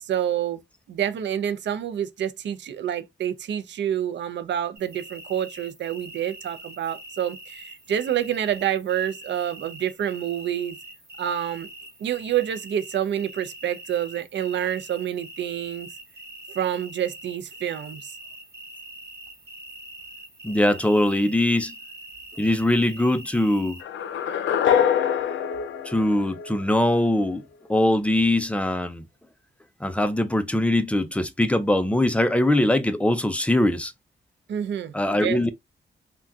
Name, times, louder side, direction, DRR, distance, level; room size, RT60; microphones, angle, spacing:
voice 1, 0.0-0.6 0.9-10.8 11.2-11.7 12.0-15.9 16.6-18.1 34.5-35.4, right 10 dB, 70° right, 0.4 m, -28 dB
sound 1, 4.7-23.8, right 2 dB, 15° right, 1.0 m, -43 dB
voice 2, 20.4-21.8 22.4-23.8 25.8-27.4 27.7-29.0 29.8-33.9 34.9-35.5, left 1 dB, 5° left, 0.4 m, -22 dB
sound 2, 23.8-26.9, left 9 dB, 90° left, 0.5 m, -24 dB
3.5 x 2.2 x 2.6 m
wide cardioid pair, 110°, 19 cm